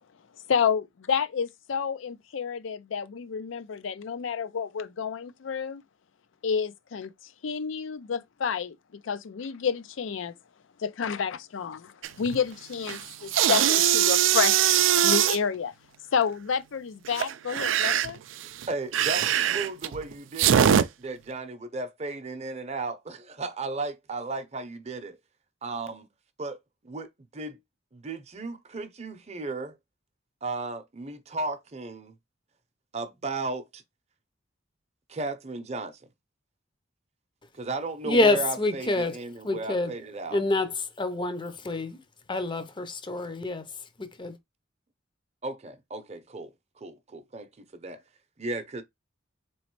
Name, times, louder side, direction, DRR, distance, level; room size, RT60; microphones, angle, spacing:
voice 1, 0.5-5.8 6.4-10.3 10.8-15.7 16.1-18.2, left 6 dB, 80° left, 0.5 m, -30 dB
sound 1, 12.0-12.4 12.7-15.4 17.1-20.8, right 10 dB, 75° right, 0.4 m, -22 dB
voice 2, 18.7-25.2 25.6-26.1 26.4-27.6 27.9-29.8 30.4-32.1 32.9-33.8 35.1-36.0 37.5-40.4 45.4-46.5 46.8-48.0 48.4-48.8, right 3 dB, 35° right, 0.7 m, -35 dB
voice 3, 38.0-39.9 40.3-42.0 42.3-43.6 44.0-44.4, left 2 dB, 25° left, 0.6 m, -27 dB
4.0 x 3.1 x 3.0 m
head